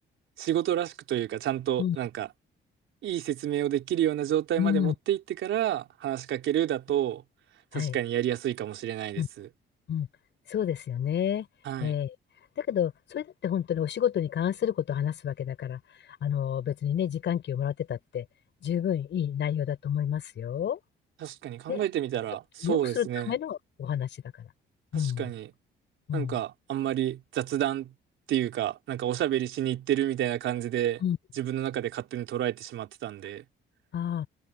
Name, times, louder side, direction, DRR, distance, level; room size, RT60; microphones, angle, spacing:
voice 1, 0.4-2.3 3.0-7.2 7.7-9.5 11.6-11.9 21.2-23.4 24.9-25.5 26.1-27.9 28.3-31.0 31.3-33.4, right 11 dB, 80° right, 4.1 m, -29 dB
voice 2, 4.6-4.9 7.7-8.0 9.2-9.3 9.9-10.1 10.5-11.5 11.8-12.1 12.6-15.8 16.2-18.3 18.6-20.8 21.7-21.8 22.6-24.1 24.9-25.2 26.1-26.4 31.0-31.2 33.9-34.3, left 9 dB, 65° left, 7.1 m, -29 dB
cardioid pair, 90°, 20 cm